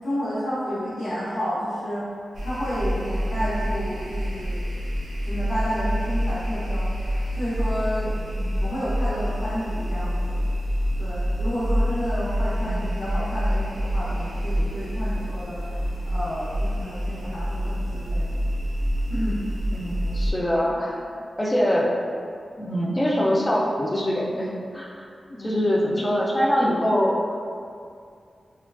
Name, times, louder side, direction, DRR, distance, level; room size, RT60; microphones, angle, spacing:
voice 1, 0.0-2.1 2.4-4.6 5.3-10.5 11.0-18.4 19.1-19.4 25.3-25.7, equal, 90° left, -11 dB, 0.8 m, -31 dB
sound 1, 2.3-20.3, equal, 85° right, 0.4 m, -27 dB
voice 2, 12.4-12.9 19.7-21.0 21.4-21.9 22.6-25.1 25.4-27.2, equal, 20° left, -4 dB, 0.3 m, -24 dB
3.1 x 2.2 x 2.3 m, 2.3 s
wide cardioid pair, 165°, 0 cm